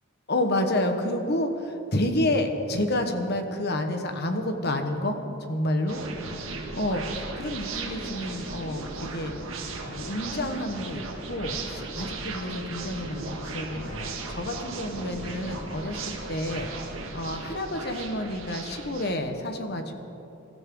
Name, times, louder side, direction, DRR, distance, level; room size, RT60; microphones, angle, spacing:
voice 1, 0.3-6.0 6.7-9.3 9.9-19.9, left 1 dB, 50° left, 6 dB, 1.4 m, -29 dB
sound 1, 5.9-19.1, right 3 dB, 65° right, 1.9 m, -36 dB
26.0 x 13.5 x 3.9 m, 2.9 s
head